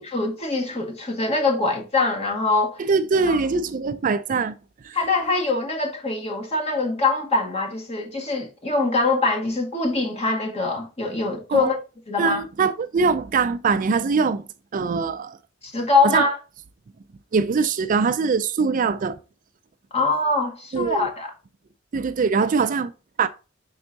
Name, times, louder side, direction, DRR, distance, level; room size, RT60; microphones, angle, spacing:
voice 1, 0.0-2.8 3.3-3.4 4.9-11.8 12.1-12.4 15.6-16.4 19.9-21.3, left 3 dB, 30° left, 1.8 m, -23 dB
voice 2, 2.8-4.6 4.8-5.0 11.5-11.7 12.2-14.4 14.7-15.4 16.0-16.3 17.3-19.2 20.7-21.1 21.9-22.9 23.2-23.3, right 5 dB, 40° right, 0.4 m, -22 dB
5.6 x 4.4 x 3.9 m
head